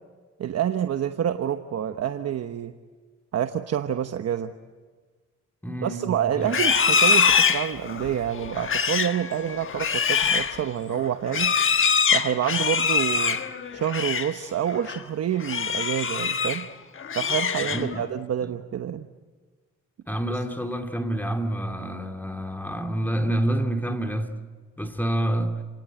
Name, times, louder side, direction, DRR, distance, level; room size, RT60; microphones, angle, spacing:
voice 1, 0.4-2.7 3.3-4.5 5.8-11.5 12.1-13.4 13.7-16.7 17.1-19.1, right 9 dB, 55° right, 1.1 m, -27 dB
voice 2, 5.6-6.5 17.7-18.1 20.1-24.3 24.8-25.6, right 1 dB, 5° left, 2.3 m, -28 dB
Livestock farm animals working animals, 6.4-14.4 14.7-15.0 15.4-16.7 17.0-18.1, left 6 dB, 45° left, 1.3 m, -24 dB
29.5 x 19.5 x 9.0 m
cardioid pair, 90°, 30 cm